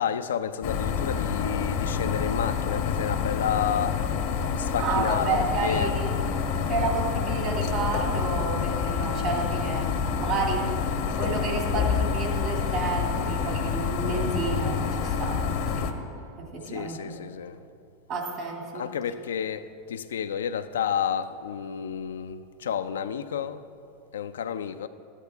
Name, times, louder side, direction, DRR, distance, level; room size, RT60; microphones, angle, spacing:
voice 1, 0.0-4.0 4.6-5.9 16.7-17.6 18.7-23.6 24.1-24.9, left 8 dB, 85° left, 0.4 m, -30 dB
sound 1, 0.6-15.9, left 6 dB, 65° left, 0.8 m, -28 dB
voice 2, 4.8-6.2 6.7-10.6 11.2-15.4 15.8-16.0 16.4-17.2 18.1-18.9, right 3 dB, 50° right, 2.2 m, -30 dB
13.0 x 9.9 x 3.5 m
hypercardioid pair, 105°, 0 cm